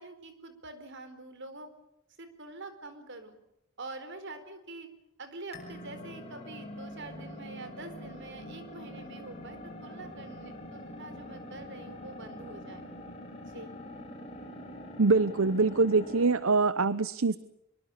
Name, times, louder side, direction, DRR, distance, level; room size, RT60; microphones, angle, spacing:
voice 1, 0.0-1.7 2.2-3.4 3.8-4.9 5.2-12.9 13.5-13.7, right 2 dB, 60° right, 10 dB, 4.2 m, -45 dB
sound 1, 5.5-16.4, left 1 dB, 30° left, 8.0 m, -44 dB
voice 2, 15.0-17.4, right 3 dB, 80° right, 15 dB, 0.8 m, -24 dB
25.0 x 23.0 x 7.0 m, 0.84 s
head